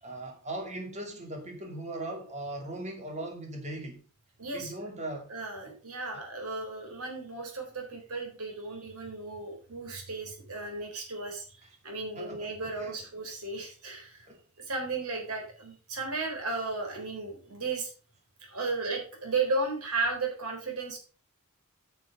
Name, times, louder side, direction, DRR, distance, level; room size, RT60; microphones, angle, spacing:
voice 1, 0.0-4.0 4.5-5.3 5.7-5.8 12.1-12.9 14.3-14.4, right 1 dB, 30° right, 2.6 m, -39 dB
voice 2, 4.4-4.7 5.3-14.3 14.6-17.9 18.4-21.0, right 3 dB, 85° right, 3.9 m, -34 dB
9.3 x 6.3 x 5.2 m
head